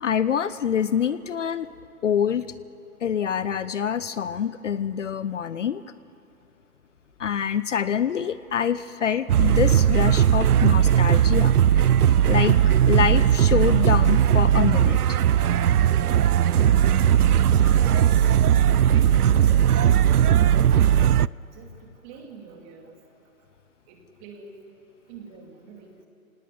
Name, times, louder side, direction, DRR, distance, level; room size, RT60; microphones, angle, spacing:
voice 1, 0.0-1.7 2.0-2.5 3.0-5.8 7.2-11.5 12.3-12.6 12.9-15.0, left 8 dB, 55° left, 15 dB, 0.8 m, -25 dB
sound 1, 9.3-21.3, right 10 dB, 80° right, 0.6 m, -18 dB
voice 2, 17.0-18.3 18.7-19.3 19.7-21.0 21.5-22.9 23.9-24.6 25.1-25.9, right 5 dB, 20° right, 2 dB, 2.6 m, -46 dB
28.0 x 18.5 x 9.0 m, 2.8 s
hypercardioid pair, 150°, 44 cm